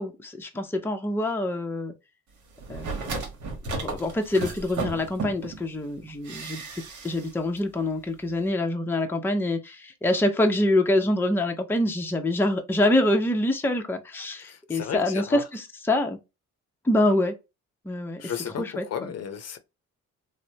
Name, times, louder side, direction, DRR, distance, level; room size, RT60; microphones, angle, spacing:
voice 1, 0.0-1.9 2.7-3.1 3.7-6.6 7.0-16.2 16.8-17.4 17.8-18.3 18.6-18.8, left 1 dB, 5° left, 0.6 m, -25 dB
sound 1, 2.6-5.6 6.2-7.3 7.6-7.7, right 3 dB, 75° right, 1.0 m, -34 dB
voice 2, 14.4-15.4 18.2-19.6, left 8 dB, 55° left, 0.6 m, -34 dB
3.2 x 2.0 x 2.7 m
cardioid pair, 90°, 30 cm